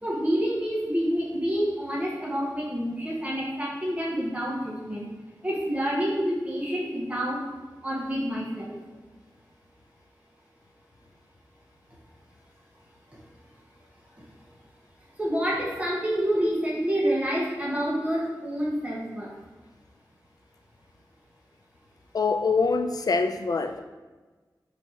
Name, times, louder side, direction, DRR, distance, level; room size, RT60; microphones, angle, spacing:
voice 1, 0.0-5.0 5.4-7.4 7.8-8.7 15.2-19.3, equal, 20° right, -5 dB, 1.0 m, -28 dB
voice 2, 22.1-23.8, left 4 dB, 60° left, 8 dB, 0.4 m, -24 dB
4.1 x 2.8 x 4.7 m, 1.3 s
wide cardioid pair, 80°, 7 cm